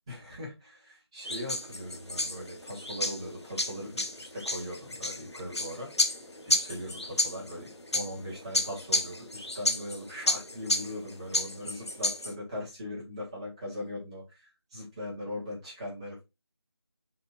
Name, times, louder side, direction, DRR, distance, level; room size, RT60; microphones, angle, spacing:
voice 1, 0.1-5.9 6.5-16.2, left 1 dB, 15° right, -7 dB, 1.6 m, -40 dB
sound 1, 1.2-12.3, left 2 dB, 90° left, 1.0 m, -32 dB
5.0 x 4.2 x 2.5 m, 0.25 s
figure-of-eight pair, 170°, 14 cm